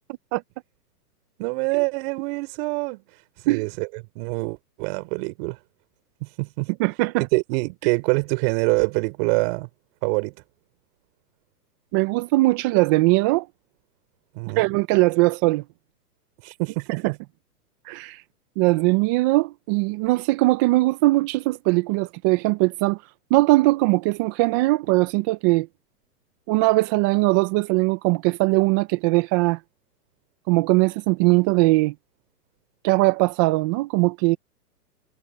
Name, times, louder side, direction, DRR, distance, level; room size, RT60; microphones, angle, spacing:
voice 1, 1.4-3.0 3.4-5.6 6.2-6.7 7.2-9.7 10.0-10.3 14.3-14.6 16.4-17.2, right 30 dB, 40° right, 4.6 m, -25 dB
voice 2, 6.8-7.2 11.9-13.5 14.6-15.6 17.9-18.2 18.6-23.0 23.3-25.7 26.5-29.6 30.5-31.9 32.8-34.4, right 22 dB, 15° right, 0.5 m, -20 dB
hypercardioid pair, 125°, 48 cm